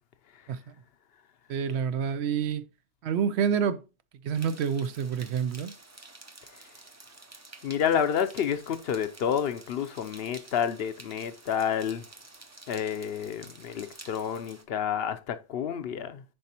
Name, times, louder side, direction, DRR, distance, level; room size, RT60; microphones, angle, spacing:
voice 1, 1.5-2.6 3.0-3.8 4.2-5.7, right 7 dB, 80° right, 0.9 m, -28 dB
sound 1, 4.3-14.6, right 2 dB, 20° right, 0.4 m, -50 dB
voice 2, 7.6-12.1 12.7-16.2, left 8 dB, 65° left, 0.8 m, -29 dB
10.0 x 4.2 x 2.8 m
omnidirectional pair, 1.1 m